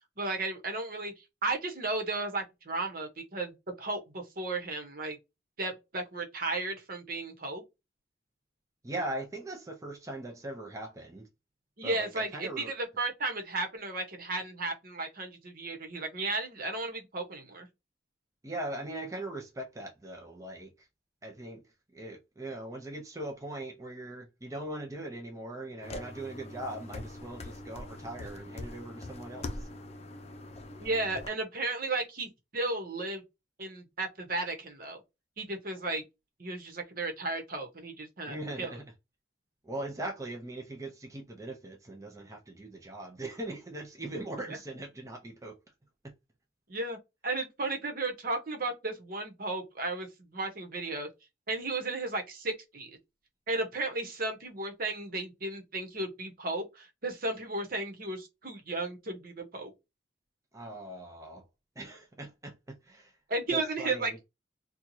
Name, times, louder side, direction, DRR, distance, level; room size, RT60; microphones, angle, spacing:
voice 1, 0.2-5.2 5.6-7.6 11.8-17.7 30.8-33.2 33.6-35.0 35.4-36.0 36.4-38.7 44.3-44.4 46.7-47.0 47.2-51.1 51.5-52.9 53.5-59.7 63.3-64.2, right 2 dB, 55° right, 1.1 m, -34 dB
voice 2, 8.8-11.3 11.8-12.7 18.4-20.9 21.2-21.6 21.9-29.7 38.3-38.8 39.6-45.6 46.0-46.1 60.5-61.5 61.8-63.1 63.5-64.2, right 1 dB, 20° right, 0.6 m, -40 dB
sound 1, 25.8-31.3, left 2 dB, 35° left, 0.6 m, -42 dB
4.4 x 2.3 x 2.7 m
head